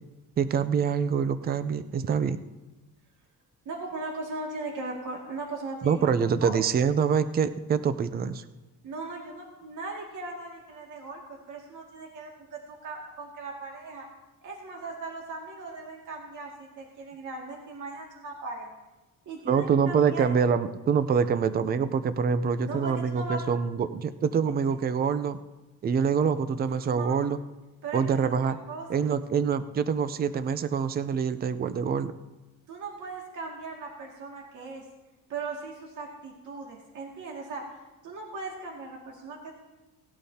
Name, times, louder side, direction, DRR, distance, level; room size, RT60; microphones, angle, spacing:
voice 1, 0.4-2.4 5.8-8.4 19.5-25.4 25.8-27.4 27.9-28.6 28.9-32.1, right 6 dB, 30° right, 13 dB, 0.5 m, -25 dB
voice 2, 3.7-6.1 6.4-6.5 8.8-14.1 14.4-18.7 19.3-20.2 22.6-23.4 26.7-27.2 27.8-29.0 32.7-34.8 35.3-37.7 38.0-39.5, right 3 dB, 60° right, -1 dB, 2.2 m, -38 dB
18.0 x 12.0 x 2.8 m, 1.1 s
cardioid pair, 150°, 34 cm